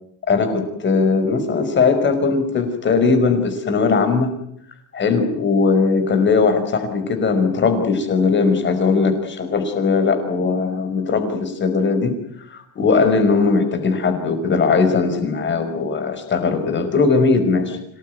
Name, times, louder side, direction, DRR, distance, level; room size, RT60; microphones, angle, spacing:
voice 1, 0.3-4.3 4.9-12.1 12.5-17.8, left 4 dB, 30° left, 7 dB, 5.4 m, -19 dB
26.0 x 19.0 x 9.5 m, 0.73 s
cardioid pair, 145°, 39 cm